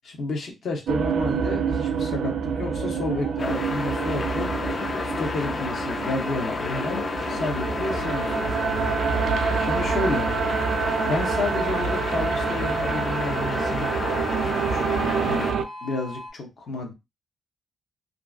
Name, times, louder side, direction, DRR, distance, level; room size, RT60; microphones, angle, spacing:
voice 1, 0.0-4.5 5.0-8.5 9.5-10.3 11.0-13.9 14.6-15.5 15.8-16.9, left 2 dB, 60° left, 0.8 m, -31 dB
sound 1, 0.9-15.6, right 6 dB, 70° right, 0.3 m, -27 dB
sound 2, 2.6-16.3, left 1 dB, 85° left, 1.0 m, -39 dB
sound 3, 3.4-15.5, left 4 dB, 35° left, 0.3 m, -31 dB
2.6 x 2.4 x 2.3 m
wide cardioid pair, 165°, 0 cm